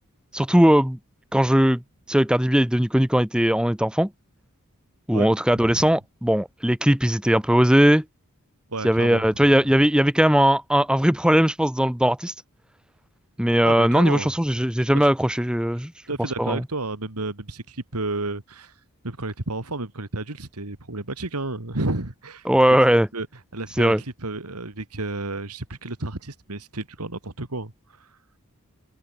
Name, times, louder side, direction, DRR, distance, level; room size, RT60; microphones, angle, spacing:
voice 1, 0.3-1.0 1.3-1.8 2.1-4.1 5.1-8.0 8.8-12.3 13.4-15.9 16.4-16.6 22.5-23.1 23.8-24.0, equal, 5° right, 0.9 m, -19 dB
voice 2, 5.1-5.8 8.7-9.5 13.6-14.3 14.9-15.1 15.8-18.8 19.0-22.5 23.1-23.3 23.5-28.2, right 2 dB, 90° right, 2.5 m, -32 dB
open air
head